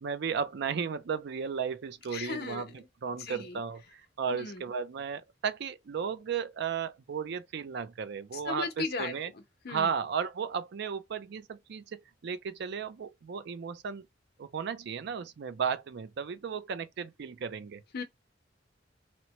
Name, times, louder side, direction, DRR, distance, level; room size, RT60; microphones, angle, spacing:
voice 1, 0.0-9.3 9.7-14.1 14.4-17.8, right 6 dB, 65° right, 0.4 m, -35 dB
voice 2, 2.1-2.6 3.2-3.6 4.3-4.6 8.3-9.1 9.6-9.9 17.9-18.0, left 4 dB, 55° left, 0.7 m, -36 dB
2.8 x 2.1 x 2.9 m
head